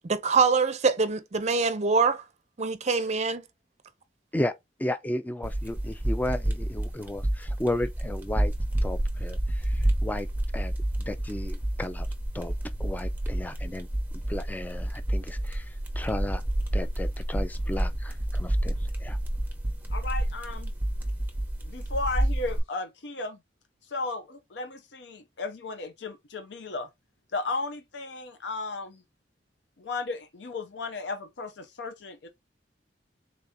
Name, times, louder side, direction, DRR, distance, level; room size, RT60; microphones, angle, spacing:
voice 1, 0.0-2.2 2.6-3.4, right 4 dB, 40° right, 0.6 m, -24 dB
voice 2, 4.8-8.5 8.8-10.3 10.5-10.7 11.0-12.1 12.3-12.5 12.8-13.9 14.3-16.4 16.7-19.2, left 1 dB, 10° left, 0.3 m, -34 dB
sound 1, 5.4-22.6, right 1 dB, 10° right, 0.8 m, -29 dB
voice 3, 19.9-20.7 21.6-23.4 23.8-26.9 27.3-29.0 29.8-32.3, left 3 dB, 70° left, 0.6 m, -35 dB
3.8 x 2.8 x 3.5 m
head